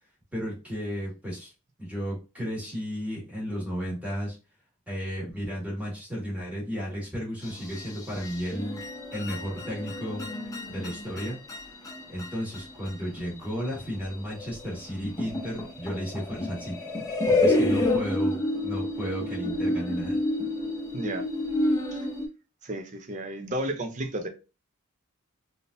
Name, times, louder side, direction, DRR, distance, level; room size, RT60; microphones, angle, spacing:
voice 1, 0.3-1.5 1.8-4.4 4.9-8.8 9.1-10.3 10.7-11.4 12.1-16.7 17.2-20.2, equal, 5° right, 1.7 m, -33 dB
sound 1, 7.4-22.3, left 2 dB, 15° left, 0.6 m, -29 dB
voice 2, 20.9-21.2 21.9-22.1 22.6-24.3, right 1 dB, 35° right, 0.5 m, -32 dB
3.5 x 2.7 x 2.5 m
head